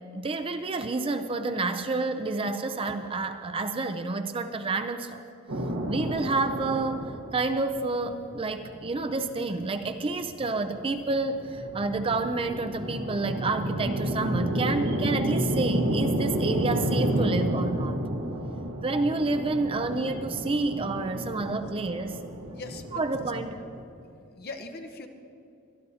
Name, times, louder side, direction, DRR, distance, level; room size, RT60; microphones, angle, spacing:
voice 1, 0.1-5.2 5.9-18.0 18.8-22.2 22.9-23.6, right 3 dB, 25° right, 8 dB, 0.4 m, -29 dB
sound 1, 5.5-23.8, equal, 75° right, 1.3 m, -31 dB
voice 2, 22.5-23.0 24.0-25.1, left 3 dB, 45° left, 5 dB, 0.9 m, -41 dB
23.0 x 12.5 x 2.8 m, 2.6 s
head